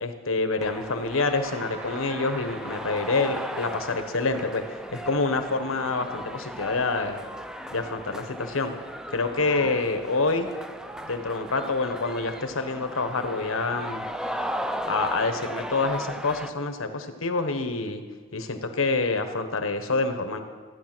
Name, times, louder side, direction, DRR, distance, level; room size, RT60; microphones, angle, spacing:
voice 1, 0.0-4.6 4.9-7.2 7.7-8.7 9.1-10.5 11.0-14.0 14.9-18.0 18.3-20.4, left 3 dB, 90° left, 8 dB, 1.2 m, -27 dB
sound 1, 0.6-16.5, equal, 5° right, 0.5 m, -37 dB
sound 2, 1.4-6.2, right 2 dB, 35° right, 1.6 m, -47 dB
15.0 x 9.4 x 6.1 m, 1.5 s
head